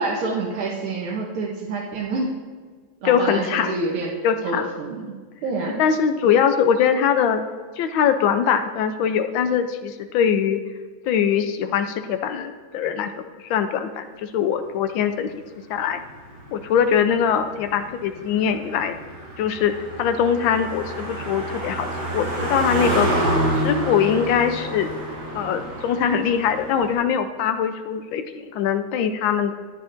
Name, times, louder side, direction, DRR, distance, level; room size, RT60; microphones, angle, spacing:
voice 1, 0.0-2.3 3.0-4.1 4.4-5.0 5.4-5.8, right 3 dB, 90° right, -3 dB, 1.9 m, -27 dB
voice 2, 3.0-3.7 4.2-4.7 5.8-7.4 7.8-10.6 11.1-13.1 13.4-15.3 15.7-16.0 16.5-18.9 19.4-23.1 23.6-24.9 25.3-29.5, left 7 dB, 75° left, 8 dB, 1.4 m, -22 dB
Car passing by, 15.8-26.9, right 1 dB, 50° right, 3.8 m, -28 dB
13.0 x 10.0 x 2.6 m, 1.5 s
omnidirectional pair, 2.2 m